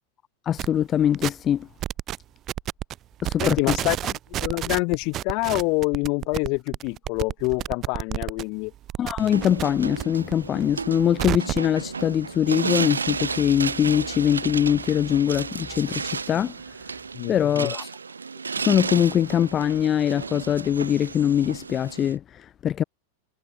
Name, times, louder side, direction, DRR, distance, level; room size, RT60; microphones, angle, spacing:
voice 1, 0.5-1.7 3.2-3.8 9.0-16.5 17.3-17.9 18.6-22.8, left 10 dB, 25° left, 0.7 m, -23 dB
sound 1, 0.6-0.7 1.1-1.5 1.8-2.2 2.5-2.9 3.2-8.4 8.7-10.0 10.3-11.7, right 12 dB, 30° right, 2.9 m, -30 dB
voice 2, 3.4-4.0 4.4-8.7 17.1-17.7, left 32 dB, 45° left, 2.0 m, -26 dB
sound 2, 9.2-22.2, right 5 dB, 75° right, 0.8 m, -33 dB
figure-of-eight pair, 90°, 0 cm